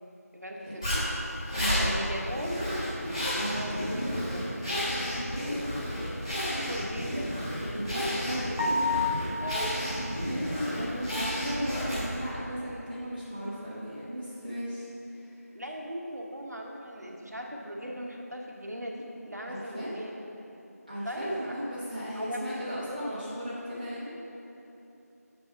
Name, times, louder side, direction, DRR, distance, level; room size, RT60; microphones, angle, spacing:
voice 1, 0.3-0.9 1.8-2.6 3.7-4.4 6.6-7.3 9.4-9.8 15.5-20.1 21.0-21.5 22.1-23.3, equal, 80° right, 0 dB, 1.1 m, -39 dB
Zipper (clothing), 0.8-12.3, equal, 10° left, 1.3 m, -31 dB
voice 2, 1.5-2.2 3.3-3.9 5.3-5.6 7.7-8.6 10.2-15.4 19.5-19.9 20.9-24.1, equal, 25° right, -11 dB, 0.7 m, -36 dB
sound 1, 8.6-9.6, left 3 dB, 55° left, 1.1 m, -28 dB
7.5 x 3.5 x 5.4 m, 3.0 s
figure-of-eight pair, 175°, 9 cm